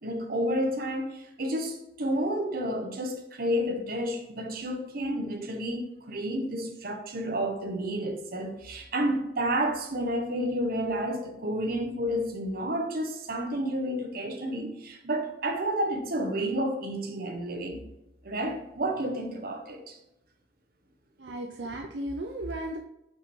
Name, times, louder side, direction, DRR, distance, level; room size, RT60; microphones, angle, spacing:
voice 1, 0.0-17.8 18.2-20.0, right 1 dB, 55° right, 1.0 m, -30 dB
voice 2, 21.2-22.8, right 1 dB, 80° right, 0.6 m, -35 dB
5.8 x 5.2 x 3.2 m
head